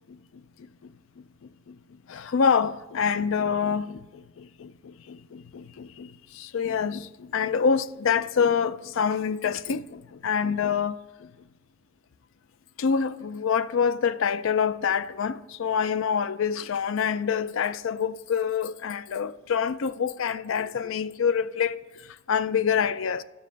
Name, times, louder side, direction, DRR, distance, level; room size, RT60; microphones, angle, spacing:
voice 1, 0.1-11.3 12.8-23.2, left 6 dB, 65° left, 0.4 m, -27 dB
12.0 x 7.4 x 3.9 m
head